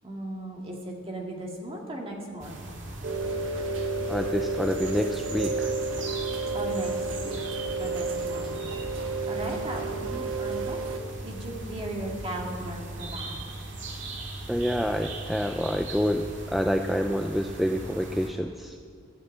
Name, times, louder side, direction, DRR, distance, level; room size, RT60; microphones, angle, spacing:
voice 1, 0.0-2.6 6.5-7.4 7.8-8.6 9.3-13.3, right 1 dB, 25° right, -1 dB, 2.1 m, -37 dB
sound 1, 2.4-18.3, right 2 dB, 65° right, 2.0 m, -38 dB
Rain, 3.0-11.0, right 3 dB, 80° right, 1.2 m, -31 dB
voice 2, 4.1-5.7 14.5-18.8, equal, ahead, 5 dB, 0.3 m, -27 dB
13.5 x 8.3 x 7.6 m, 2.3 s
head